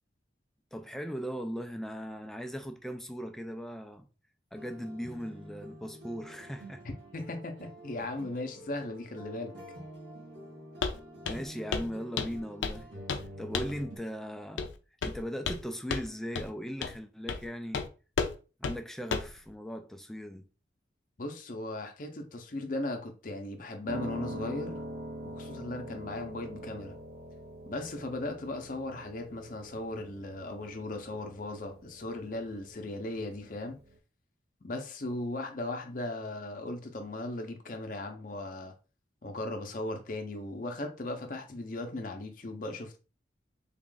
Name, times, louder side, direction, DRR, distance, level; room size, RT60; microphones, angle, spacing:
voice 1, 0.7-4.1 4.5-6.8 11.2-12.9 13.4-14.7 15.0-17.9 18.6-20.4, equal, ahead, 0.3 m, -38 dB
sound 1, 4.5-14.0, right 1 dB, 85° right, 1.5 m, -48 dB
voice 2, 7.1-9.5 21.2-24.8 25.2-27.0 27.7-33.8 34.6-38.7 39.2-43.0, left 2 dB, 45° left, 0.6 m, -37 dB
Walk footsteps, 10.8-11.0 11.2-11.5 11.7-11.9 12.2-12.8 13.1-13.3 13.5-13.8 14.6-14.7 15.0-15.6 15.9-16.1 16.3-16.5 16.8-17.0 17.3-17.4 17.7-17.9 18.2-18.3 18.6-18.8 19.1-19.3, left 5 dB, 85° left, 0.5 m, -32 dB
Piano, 23.9-34.0, right 1 dB, 55° right, 0.6 m, -44 dB
3.5 x 2.4 x 3.8 m
head